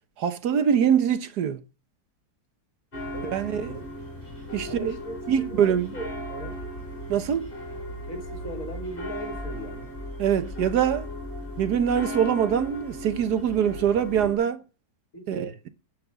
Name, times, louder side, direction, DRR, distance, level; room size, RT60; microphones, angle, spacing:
voice 1, 0.2-1.6 3.3-3.8 4.5-5.0 5.3-5.9 7.1-7.5 10.2-11.1 11.6-14.6 15.3-15.7, right 8 dB, 75° right, 1.5 m, -24 dB
sound 1, 2.9-14.4, equal, 30° left, 4.5 m, -37 dB
voice 2, 3.1-3.8 4.6-6.6 8.1-9.9 15.1-15.6, right 1 dB, 55° left, 3.0 m, -38 dB
10.5 x 5.2 x 7.2 m
omnidirectional pair, 1.8 m